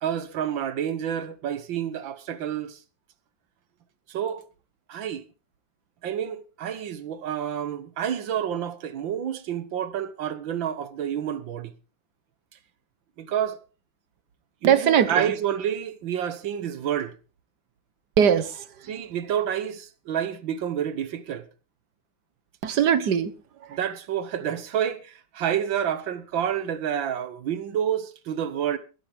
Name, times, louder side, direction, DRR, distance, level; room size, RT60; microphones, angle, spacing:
voice 1, 0.0-2.8 4.1-4.4 4.9-5.2 6.0-11.7 13.2-13.6 14.6-17.2 18.9-21.5 23.7-28.8, right 9 dB, 75° right, 1.8 m, -29 dB
voice 2, 14.6-15.3 18.2-18.7 22.6-23.3 23.6-23.8, right 8 dB, 60° right, 1.6 m, -21 dB
21.0 x 10.5 x 3.5 m
omnidirectional pair, 2.1 m